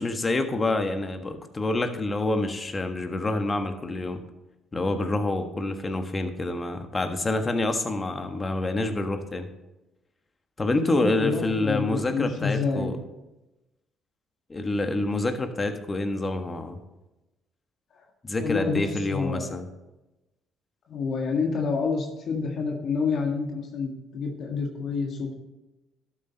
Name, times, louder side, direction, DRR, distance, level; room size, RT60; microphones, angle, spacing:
voice 1, 0.0-4.2 4.7-9.5 10.6-13.0 14.5-16.8 18.2-19.7, left 2 dB, 30° left, 7 dB, 1.5 m, -27 dB
voice 2, 10.8-12.9 18.4-19.6 20.9-25.3, left 4 dB, 60° left, 1 dB, 1.7 m, -28 dB
12.0 x 7.7 x 4.1 m, 1.0 s
supercardioid pair, 60°, 0 cm